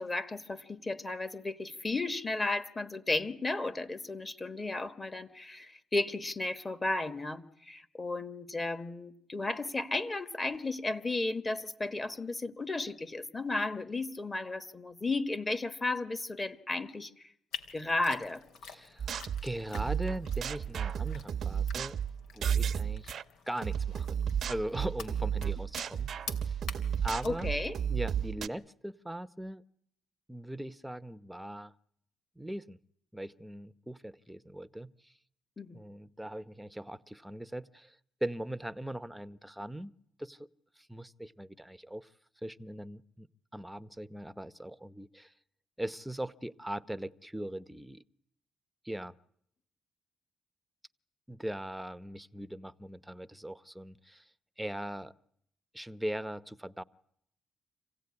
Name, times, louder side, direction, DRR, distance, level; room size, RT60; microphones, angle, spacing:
voice 1, 0.0-17.3 17.7-18.4 27.2-27.8 35.6-35.8, left 2 dB, 25° left, 12 dB, 1.5 m, -34 dB
sound 1, 17.5-28.3, left 6 dB, 85° left, 2.8 m, -49 dB
voice 2, 18.6-19.1 19.4-22.0 22.3-23.1 23.5-24.2 24.5-26.1 26.4-26.6 27.0-27.5 27.9-29.6 30.3-31.7 32.4-32.8 33.1-35.1 35.7-39.9 40.2-40.5 40.8-42.1 42.4-43.3 43.5-45.3 45.8-48.0 48.8-49.1 51.3-55.1 55.7-56.8, right 1 dB, 5° right, 13 dB, 0.9 m, -40 dB
sound 2, 19.0-23.2 23.6-28.5, right 8 dB, 60° right, 0.9 m, -33 dB
26.5 x 16.5 x 9.7 m, 0.73 s
cardioid pair, 90°, 0 cm